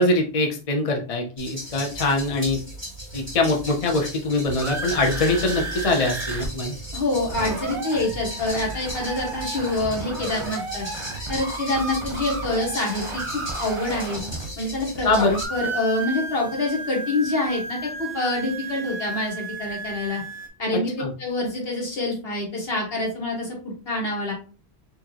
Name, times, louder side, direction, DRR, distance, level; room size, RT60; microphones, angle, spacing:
voice 1, 0.0-2.6 3.1-6.7 15.0-15.4 21.0-21.1, left 2 dB, 40° left, 3 dB, 0.6 m, -23 dB
sound 1, 1.4-15.4, equal, 10° left, 1.7 m, -37 dB
sound 2, 4.2-6.5 6.7-6.8 7.1-15.0 15.3-20.5, right 3 dB, 30° right, 0.8 m, -33 dB
voice 2, 6.9-10.9 11.3-14.2 14.6-20.2 20.6-20.9 21.2-24.3, left 2 dB, 65° left, -2 dB, 1.6 m, -26 dB
4.5 x 2.6 x 2.8 m, 0.35 s
omnidirectional pair, 1.1 m